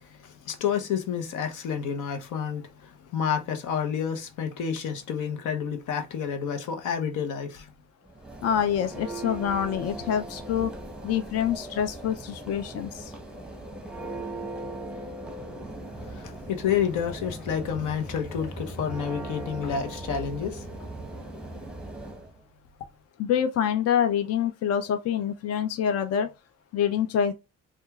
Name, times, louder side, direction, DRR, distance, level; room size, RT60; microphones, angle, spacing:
voice 1, 0.0-7.7 16.0-21.2, left 7 dB, 80° left, 0.8 m, -30 dB
Church bell, 8.1-22.3, right 2 dB, 5° right, 0.8 m, -39 dB
voice 2, 8.4-10.7 11.0-13.1 23.2-26.3 26.7-27.3, left 8 dB, 55° left, 0.5 m, -26 dB
4.4 x 2.3 x 2.3 m
cardioid pair, 90°, 30 cm